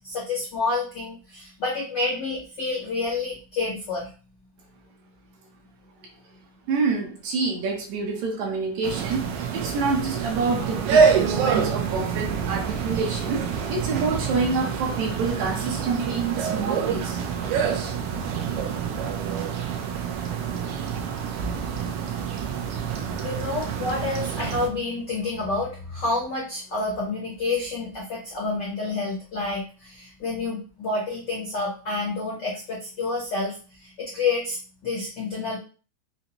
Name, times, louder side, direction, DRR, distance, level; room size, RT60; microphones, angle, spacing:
voice 1, 0.0-4.1 23.2-33.5 33.8-34.6 34.8-35.6, left 3 dB, 75° left, -5 dB, 1.0 m, -29 dB
voice 2, 6.7-9.2 9.5-17.2, right 4 dB, 75° right, 1 dB, 1.9 m, -27 dB
sound 1, 8.8-24.7, right 6 dB, 90° right, 1.3 m, -26 dB
5.3 x 2.1 x 2.8 m, 0.36 s
omnidirectional pair, 3.4 m